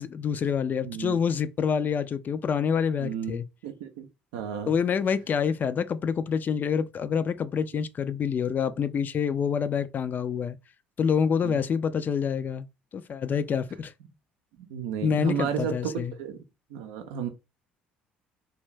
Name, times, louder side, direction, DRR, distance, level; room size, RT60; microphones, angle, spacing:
voice 1, 0.0-3.5 4.7-10.6 11.0-12.7 12.9-13.9 15.0-16.1, left 7 dB, 40° left, 0.3 m, -27 dB
voice 2, 0.8-1.2 3.0-4.1 4.3-4.7 11.4-11.6 14.7-15.9 16.2-16.4 16.7-17.3, right 8 dB, 75° right, 0.4 m, -33 dB
2.5 x 2.3 x 3.1 m
hypercardioid pair, 55°, 5 cm